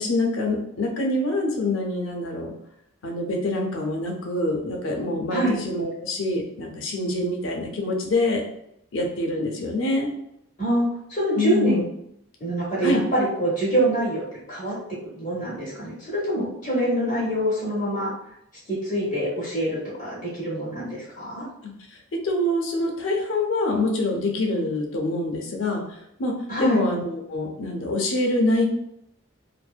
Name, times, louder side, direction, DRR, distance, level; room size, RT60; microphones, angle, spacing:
voice 1, 0.0-2.5 3.0-8.4 8.9-10.1 11.3-11.8 12.8-13.0 22.2-25.8 26.2-26.3 26.6-28.7, left 2 dB, 80° left, 1 dB, 0.6 m, -25 dB
voice 2, 10.6-11.8 12.4-14.8 15.1-18.1 18.7-21.5 26.5-26.8, right 1 dB, 35° left, -8 dB, 0.8 m, -25 dB
2.6 x 2.0 x 2.3 m, 0.76 s
head